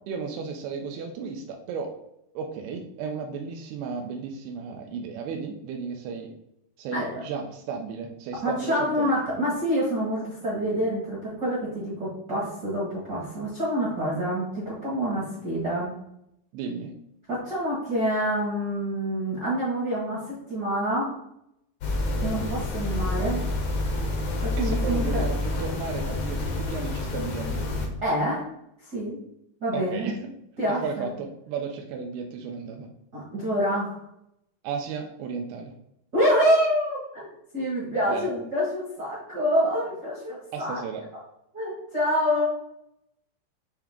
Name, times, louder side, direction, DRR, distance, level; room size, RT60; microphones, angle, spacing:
voice 1, 0.1-1.9 2.4-6.3 6.8-9.1 16.5-16.9 24.6-27.7 29.7-30.2 30.8-32.9 34.6-35.7 38.1-38.3 40.5-41.0, right 5 dB, 85° right, 3 dB, 2.6 m, -34 dB
voice 2, 6.9-7.2 8.4-15.9 17.3-21.2 22.2-23.4 24.4-25.2 28.0-28.5 28.9-29.2 29.6-30.1 30.6-31.1 33.1-34.0 36.1-40.8 41.5-42.5, equal, 50° right, -7 dB, 1.2 m, -27 dB
sound 1, 21.8-27.9, left 2 dB, 70° left, 1.6 m, -28 dB
8.5 x 3.4 x 3.6 m, 0.78 s
omnidirectional pair, 4.7 m